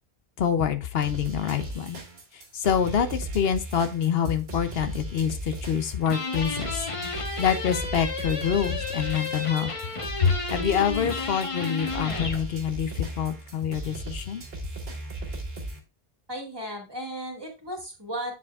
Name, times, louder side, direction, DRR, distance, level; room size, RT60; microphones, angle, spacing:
voice 1, 0.4-2.0 2.5-9.7 10.2-14.4, left 8 dB, 70° left, 9 dB, 0.9 m, -26 dB
sound 1, 1.0-15.8, right 1 dB, 70° right, 1.7 m, -37 dB
sound 2, 6.0-12.4, left 3 dB, 35° left, 1.0 m, -32 dB
voice 2, 16.3-18.3, equal, 25° right, 1 dB, 1.8 m, -35 dB
8.3 x 7.2 x 2.4 m, 0.29 s
omnidirectional pair, 1.1 m